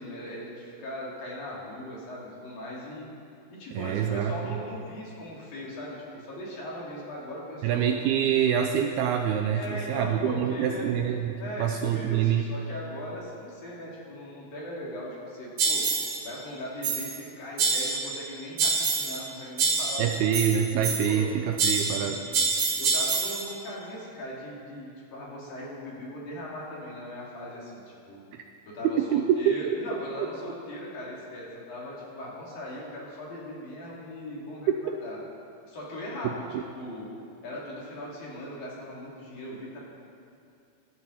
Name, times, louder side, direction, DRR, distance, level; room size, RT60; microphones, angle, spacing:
voice 1, 0.0-3.1 3.5-7.9 8.1-8.2 9.5-10.9 11.4-15.9 16.2-20.1 21.1-21.3 21.9-22.4 22.8-28.2 28.7-35.2 35.7-37.1 37.4-39.8, left 1 dB, 55° left, -5 dB, 4.7 m, -39 dB
voice 2, 3.8-4.3 7.6-12.5 20.0-22.3 28.3-28.4 28.8-29.5 36.5-36.6, right 9 dB, 80° right, 4 dB, 2.3 m, -26 dB
sound 1, 15.6-16.2 16.8-17.2 17.6-18.2 18.6-19.3 19.6-21.2 21.6-23.5, right 4 dB, 55° right, 2.6 m, -27 dB
24.5 x 12.5 x 4.3 m, 2.5 s
omnidirectional pair, 5.1 m